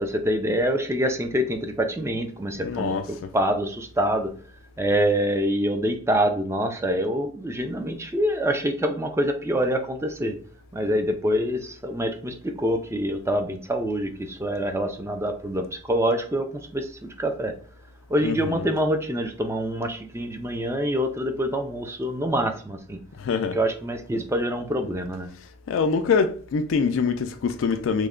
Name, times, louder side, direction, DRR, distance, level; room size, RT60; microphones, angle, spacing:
voice 1, 0.0-4.3 4.8-10.4 10.7-17.5 18.1-23.0 23.5-25.3, equal, 15° right, 0.4 m, -26 dB
voice 2, 2.6-3.3 18.2-18.6 23.2-23.6 25.7-28.1, left 5 dB, 75° left, 0.3 m, -24 dB
3.2 x 2.1 x 3.6 m
head